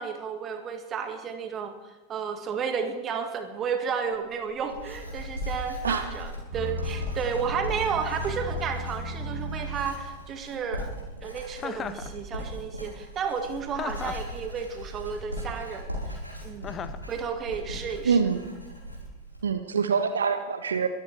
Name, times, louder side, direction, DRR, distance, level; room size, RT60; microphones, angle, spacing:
voice 1, 0.0-1.7 2.1-10.9 11.2-16.7 17.1-18.2, right 6 dB, 25° right, 6 dB, 2.0 m, -32 dB
Writing, 4.1-19.4, equal, 90° right, 4.8 m, -38 dB
sound 1, 6.5-10.3, right 1 dB, 50° right, 2.3 m, -35 dB
Chuckle chortle, 11.6-12.1 13.7-14.3 16.6-17.1, left 7 dB, 25° left, 0.8 m, -35 dB
voice 2, 18.0-18.4 19.4-20.9, right 6 dB, 70° right, 9 dB, 0.9 m, -25 dB
22.5 x 14.0 x 3.6 m, 1.2 s
figure-of-eight pair, 90°, 0 cm